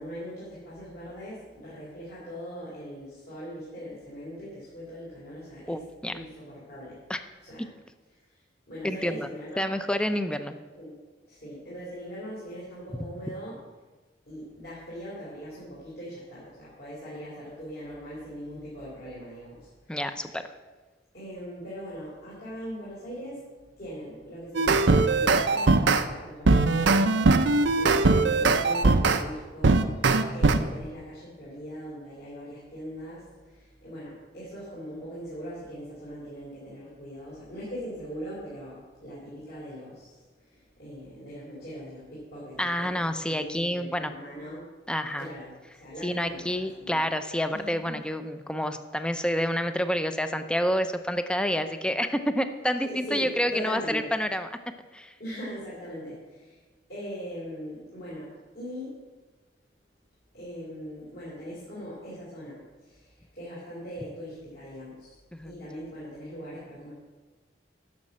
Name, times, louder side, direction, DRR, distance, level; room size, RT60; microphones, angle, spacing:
voice 1, 0.0-5.8 6.1-7.0 7.4-7.7 8.3-8.4 8.7-9.7 10.7-10.9 11.3-13.6 14.3-20.4 21.1-44.7 45.2-45.5 45.8-47.1 47.5-48.0 52.8-54.1 55.2-56.6 56.9-59.0 60.3-65.2 65.4-66.9, equal, 60° left, -9 dB, 3.9 m, -41 dB
voice 2, 5.7-6.1 7.1-7.2 8.8-9.3 9.6-10.6 19.9-20.4 42.6-44.1 44.9-45.3 46.0-54.5 54.9-55.1 65.3-65.5, equal, 5° left, 9 dB, 0.6 m, -28 dB
sound 1, 24.5-26.0 26.5-29.2 29.6-30.6, right 3 dB, 75° right, 0.7 m, -21 dB
10.5 x 6.7 x 7.4 m, 1.3 s
head